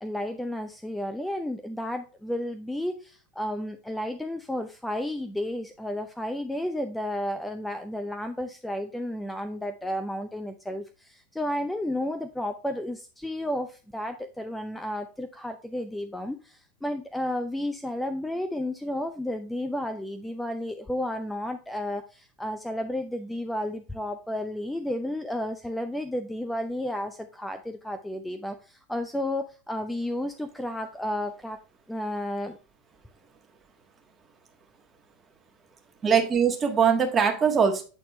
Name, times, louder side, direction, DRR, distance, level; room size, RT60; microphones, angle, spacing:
voice 1, 0.0-31.6 31.9-32.6, left 1 dB, 5° left, 8 dB, 0.6 m, -32 dB
voice 2, 36.0-37.8, right 7 dB, 25° right, 4 dB, 1.5 m, -22 dB
8.2 x 4.2 x 3.0 m, 0.34 s
figure-of-eight pair, 85°, 0 cm